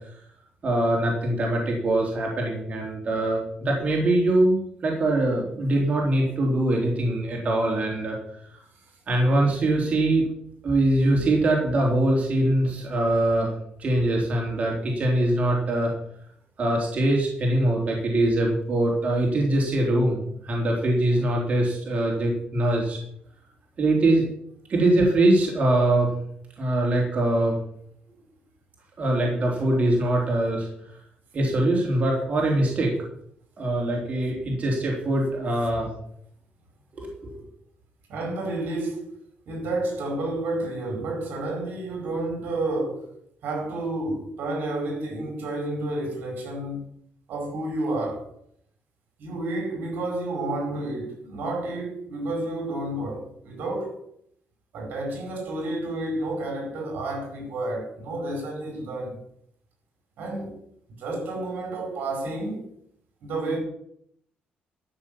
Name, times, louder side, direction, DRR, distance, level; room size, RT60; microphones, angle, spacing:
voice 1, 0.6-8.2 9.1-10.3 10.6-13.5 13.8-15.9 16.6-23.0 23.8-24.2 24.7-26.1 26.6-27.6 29.0-30.7 31.3-32.9 33.6-35.9 36.9-37.4, right 1 dB, 45° right, 3.4 m, -23 dB
voice 2, 38.1-39.2 39.5-43.1 43.4-46.9 47.3-48.3 49.2-54.0 54.7-59.2 60.2-60.6 61.0-62.7 63.2-63.6, right 2 dB, 75° right, 4.7 m, -30 dB
13.0 x 6.5 x 7.2 m
cardioid pair, 110°, 3 cm